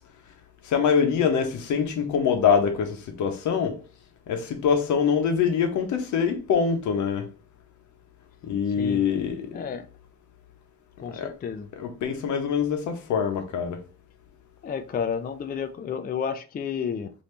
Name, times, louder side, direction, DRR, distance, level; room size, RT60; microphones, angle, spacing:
voice 1, 0.6-3.8 4.3-7.3 8.4-9.5 11.1-11.3 11.7-13.8, left 6 dB, 75° left, 0.8 m, -24 dB
voice 2, 9.5-9.9 11.0-11.7 14.6-17.1, left 7 dB, 30° left, 0.4 m, -31 dB
3.2 x 2.7 x 2.9 m
cardioid pair, 90°, 30 cm